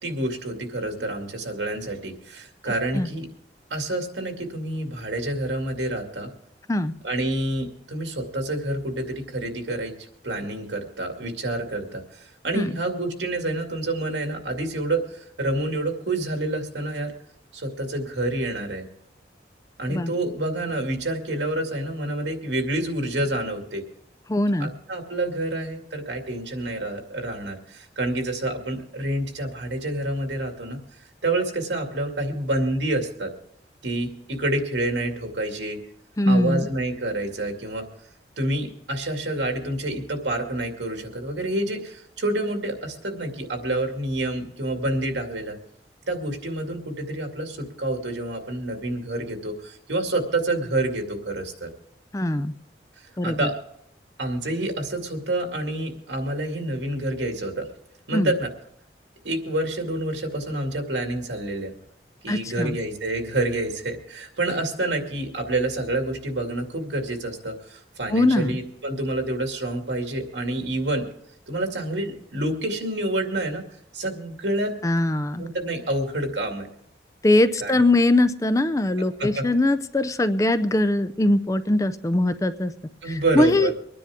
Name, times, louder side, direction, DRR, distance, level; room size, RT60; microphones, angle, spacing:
voice 1, 0.0-3.3 3.7-6.3 7.0-9.9 10.2-17.1 17.5-18.8 19.8-23.8 24.6-30.8 31.2-33.3 33.8-35.8 36.3-37.8 38.4-45.6 46.1-51.7 53.2-53.5 54.2-57.7 58.1-58.5 59.2-61.7 62.2-71.0 71.5-73.6 73.9-74.7 75.4-76.7 77.6-77.8 79.2-79.4 83.0-83.7, right 1 dB, 90° right, 3 dB, 2.4 m, -28 dB
voice 2, 24.3-24.7 36.2-36.7 52.1-52.5 53.2-53.5 58.1-58.3 62.3-62.8 68.1-68.6 74.8-75.4 77.2-82.7 83.1-83.7, left 1 dB, 20° left, 12 dB, 0.5 m, -21 dB
25.0 x 10.0 x 3.6 m, 0.71 s
head